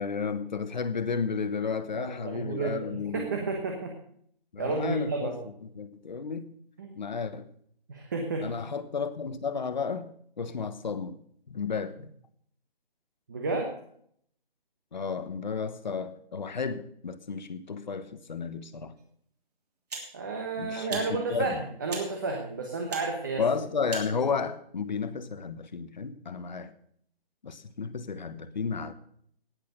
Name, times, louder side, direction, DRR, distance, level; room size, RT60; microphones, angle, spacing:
voice 1, 0.0-3.3 4.5-6.5 7.0-7.5 8.4-10.1 10.4-11.2 11.5-12.1 14.9-18.9 20.6-21.6 23.4-26.7 27.4-28.9, left 5 dB, 50° left, 12 dB, 1.2 m, -32 dB
voice 2, 1.9-3.9 4.6-5.4 6.8-7.0 7.9-8.4 13.3-13.7 20.1-23.4, right 3 dB, 20° right, 2 dB, 1.1 m, -31 dB
sound 1, 19.0-19.1 19.9-20.1 20.9-21.1 21.9-22.1 22.9-23.1 23.9-24.1, right 4 dB, 40° right, 3.2 m, -37 dB
18.0 x 6.7 x 6.5 m, 0.66 s
hypercardioid pair, 175°, 30 cm